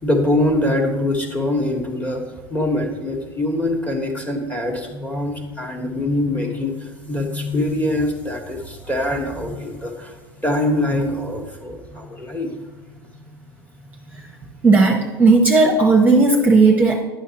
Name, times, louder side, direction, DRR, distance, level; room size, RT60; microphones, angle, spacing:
voice 1, 0.0-13.3 14.1-14.3, left 1 dB, 10° left, 2 dB, 1.4 m, -24 dB
voice 2, 14.6-17.0, right 3 dB, 15° right, 1 dB, 0.9 m, -14 dB
9.8 x 6.4 x 2.9 m, 1.1 s
hypercardioid pair, 85°, 13 cm